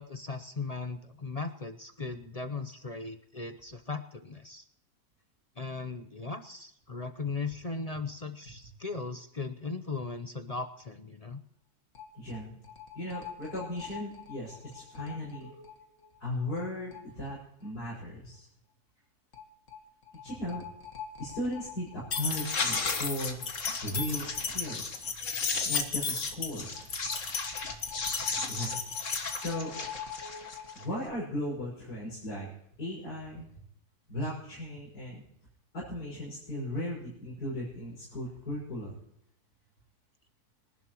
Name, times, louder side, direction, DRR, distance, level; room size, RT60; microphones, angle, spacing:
voice 1, 0.0-4.6 5.6-11.4, left 4 dB, 35° left, 9 dB, 0.6 m, -38 dB
sound 1, 12.0-12.1 12.3-12.4 12.6-15.8 16.6-16.7 16.9-17.0 17.3-17.4 19.3-19.4 19.7-19.8 20.1-31.1, left 5 dB, 50° left, 1.8 m, -34 dB
voice 2, 12.1-12.6 12.9-15.5 16.2-18.4 20.2-20.6 21.2-23.4 23.8-25.0 25.6-26.9 28.5-28.8 29.4-29.7 30.7-32.5 32.8-33.5 34.1-35.2 35.7-39.0, left 1 dB, 85° left, -7 dB, 6.8 m, -37 dB
26.0 x 11.0 x 3.0 m, 0.73 s
omnidirectional pair, 1.7 m